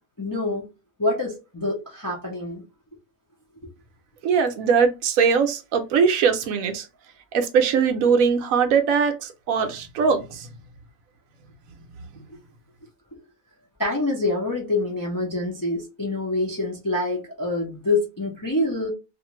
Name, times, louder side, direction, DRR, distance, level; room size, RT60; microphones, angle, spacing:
voice 1, 0.2-0.7 1.0-2.6 12.3-12.4 13.8-18.9, left 2 dB, 30° left, 0.4 m, -26 dB
voice 2, 4.2-6.9 7.3-10.5, right 6 dB, 75° right, 1.0 m, -21 dB
2.5 x 2.5 x 2.9 m
omnidirectional pair, 1.5 m